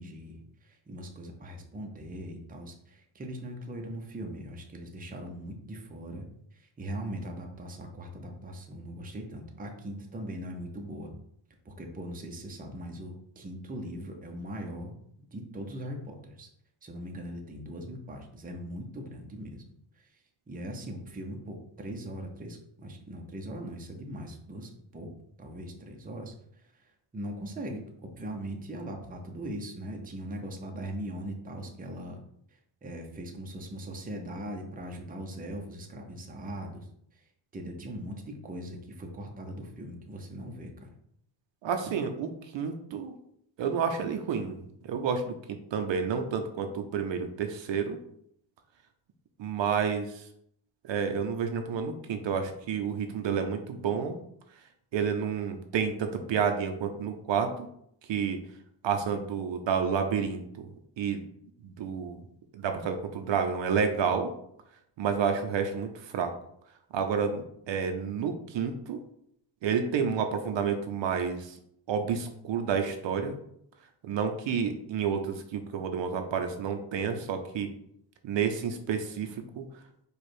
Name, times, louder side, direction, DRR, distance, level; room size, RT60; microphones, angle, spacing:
voice 1, 0.0-6.3 6.5-11.1 11.6-15.0 15.3-16.5 16.8-19.7 20.0-20.1 20.5-25.1 25.4-32.2 32.5-36.9 37.1-37.2 37.5-40.9, right 1 dB, 15° right, 2 dB, 0.7 m, -40 dB
voice 2, 41.6-43.1 43.6-44.6 44.8-48.0 49.4-50.2 50.9-54.2 54.9-57.7 58.1-58.4 58.8-60.7 61.0-61.2 61.6-62.2 62.5-64.3 65.0-66.3 66.9-69.0 69.6-71.5 71.9-73.4 74.0-77.7 78.2-79.6, right 6 dB, 60° right, 6 dB, 0.7 m, -30 dB
4.9 x 2.4 x 4.4 m, 0.71 s
cardioid pair, 115°, 49 cm